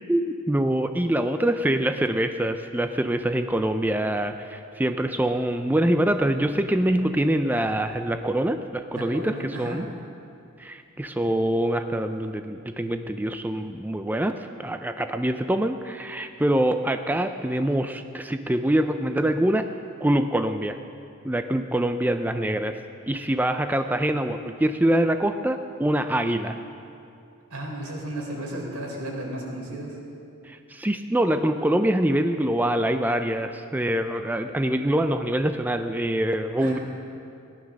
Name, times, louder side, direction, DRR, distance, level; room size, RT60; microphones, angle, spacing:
voice 1, 0.1-9.9 10.6-14.3 14.6-19.6 20.0-20.8 21.2-22.8 23.1-26.6 30.5-36.8, right 1 dB, 10° right, 7 dB, 0.4 m, -24 dB
voice 2, 8.9-9.8 27.5-30.0 36.6-36.8, right 1 dB, 85° right, -1 dB, 3.7 m, -34 dB
17.5 x 11.0 x 6.3 m, 2.6 s
head